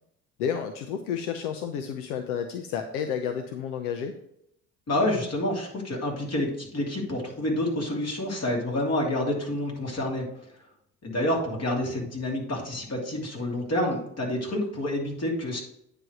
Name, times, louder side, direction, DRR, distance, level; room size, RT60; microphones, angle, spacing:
voice 1, 0.4-4.2, left 7 dB, 70° left, 7 dB, 0.8 m, -31 dB
voice 2, 4.9-10.2 11.0-15.6, left 1 dB, 35° left, 0 dB, 2.8 m, -28 dB
9.2 x 3.3 x 6.2 m, 0.76 s
hypercardioid pair, 60°, 46 cm